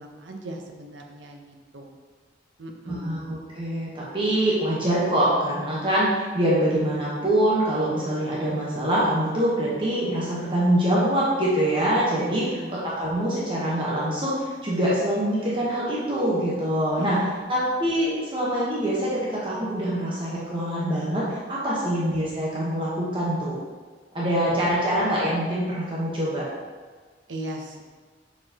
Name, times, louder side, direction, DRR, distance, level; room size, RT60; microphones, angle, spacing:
voice 1, 0.0-1.9 2.6-3.3 12.2-12.8 17.0-17.4 21.9-22.0 24.3-24.5 27.3-27.8, right 1 dB, 75° right, 3 dB, 0.8 m, -38 dB
voice 2, 2.9-23.6 24.1-26.5, right 1 dB, 30° right, -7 dB, 1.1 m, -24 dB
6.7 x 4.8 x 2.9 m, 1.5 s
head